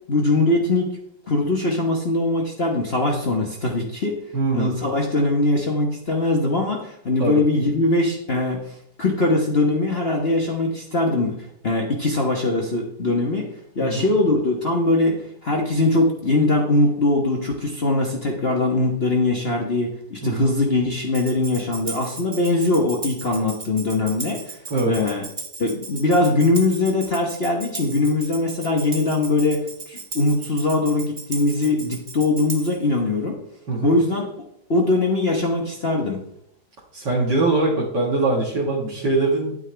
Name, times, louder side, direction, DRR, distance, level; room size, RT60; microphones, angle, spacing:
voice 1, 0.1-0.9 1.3-4.2 4.5-11.3 11.6-13.5 13.7-24.6 24.9-25.2 25.6-33.4 33.8-34.3 34.7-36.2, left 2 dB, 35° left, -1 dB, 1.4 m, -21 dB
voice 2, 4.3-4.7 7.2-7.4 13.8-14.1 20.2-20.5 24.7-25.0 33.7-34.0 36.9-39.6, right 2 dB, 75° right, -4 dB, 2.4 m, -22 dB
Tambourine, 21.1-32.9, right 4 dB, 35° right, 0.7 m, -37 dB
10.5 x 9.1 x 3.4 m, 0.72 s
omnidirectional pair, 1.9 m